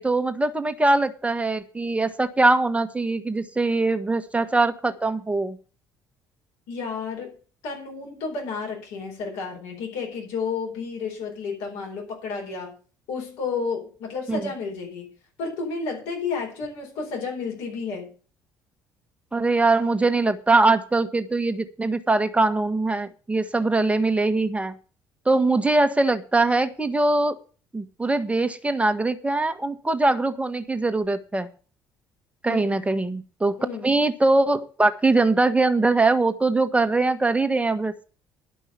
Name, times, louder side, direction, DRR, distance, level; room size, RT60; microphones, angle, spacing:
voice 1, 0.0-5.6 14.3-14.5 19.3-24.7 25.2-27.4 27.7-31.5 32.4-38.0, right 2 dB, 10° right, 8 dB, 1.3 m, -22 dB
voice 2, 6.7-7.3 7.6-12.7 13.1-15.1 15.4-18.1 32.5-32.8 33.6-33.9, left 4 dB, 65° left, 0 dB, 4.3 m, -31 dB
11.5 x 5.4 x 8.1 m, 0.39 s
figure-of-eight pair, 50°, 10 cm